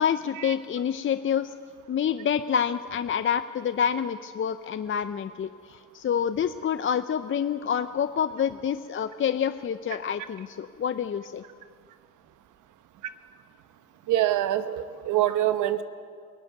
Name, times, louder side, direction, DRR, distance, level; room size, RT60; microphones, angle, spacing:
voice 1, 0.0-1.5 1.9-11.4, left 8 dB, 40° left, 11 dB, 0.7 m, -27 dB
voice 2, 14.1-15.8, right 13 dB, 90° right, 11 dB, 1.1 m, -24 dB
23.0 x 16.0 x 9.4 m, 2.2 s
cardioid pair, 90°, 30 cm